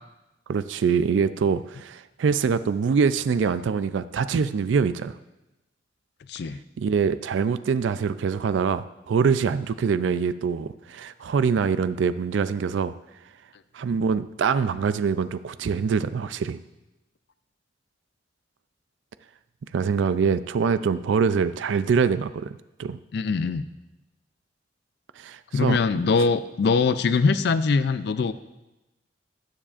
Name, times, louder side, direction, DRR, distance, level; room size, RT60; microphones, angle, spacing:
voice 1, 0.5-5.2 6.8-12.9 13.7-16.6 19.7-23.0 25.2-25.8, right 6 dB, 75° right, 13 dB, 0.4 m, -24 dB
voice 2, 6.3-6.6 23.1-23.6 25.5-28.3, left 4 dB, 60° left, 13 dB, 0.4 m, -22 dB
19.0 x 7.4 x 2.5 m, 0.98 s
head